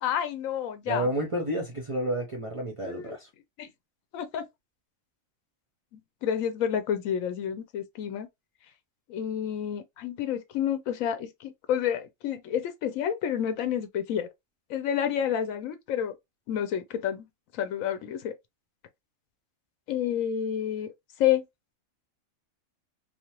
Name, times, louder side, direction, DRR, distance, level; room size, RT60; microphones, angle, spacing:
voice 1, 0.0-1.1 2.8-3.2 3.6-3.7 4.1-4.4 5.9-8.3 9.1-14.3 14.7-16.1 16.5-17.3 17.5-18.3 19.9-20.9 21.2-21.4, left 9 dB, 85° left, 1.0 m, -29 dB
voice 2, 0.9-3.3, right 1 dB, 45° right, 0.4 m, -30 dB
3.2 x 2.1 x 2.8 m
omnidirectional pair, 1.4 m